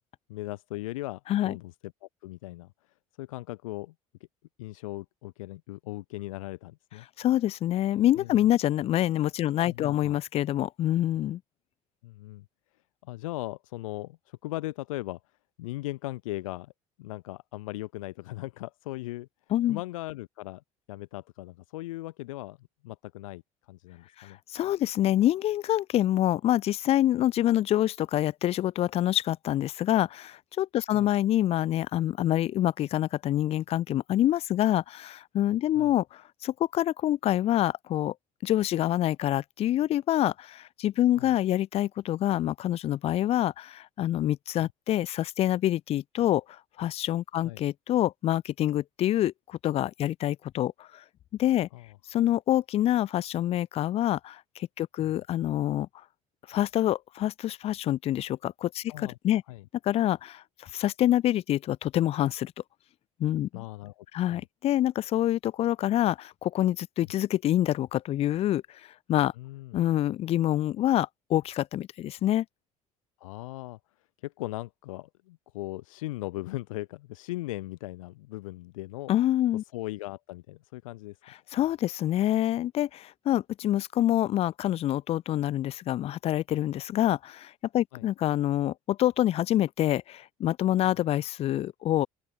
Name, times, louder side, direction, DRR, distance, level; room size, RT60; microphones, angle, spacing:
voice 1, 0.3-1.7 2.0-3.9 4.6-7.3 8.2-8.3 9.6-10.2 12.0-12.4 13.0-15.2 15.6-16.7 17.0-19.3 19.7-20.6 20.9-22.6 22.8-23.4 23.7-24.4 30.9-31.1 35.7-35.9 41.2-41.3 47.4-47.6 51.7-51.9 55.0-55.1 58.9-59.2 59.5-59.6 63.5-64.4 69.4-69.8 73.2-73.8 74.2-79.1 79.7-81.2 87.9-88.1, left 18 dB, 65° left, 1.2 m, -38 dB
voice 2, 7.2-11.4 19.5-19.8 24.2-38.1 38.4-51.0 51.4-51.7 52.1-55.9 56.5-59.4 59.8-62.5 63.2-63.6 64.1-68.6 69.1-69.3 69.7-72.5 79.1-79.6 81.5-92.1, left 13 dB, 35° left, 0.4 m, -26 dB
open air
figure-of-eight pair, 55°, 18 cm